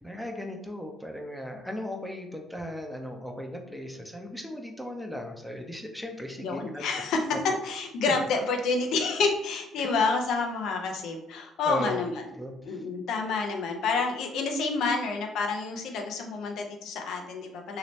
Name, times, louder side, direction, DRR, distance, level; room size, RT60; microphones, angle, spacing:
voice 1, 0.0-6.8 8.1-8.2 9.8-9.9 11.7-12.0 12.3-12.8, equal, 5° left, 3 dB, 0.7 m, -37 dB
voice 2, 6.4-7.3 7.6-12.2 12.6-17.8, left 4 dB, 65° left, 3 dB, 0.6 m, -29 dB
3.0 x 2.8 x 3.1 m, 0.89 s
hypercardioid pair, 55°, 0 cm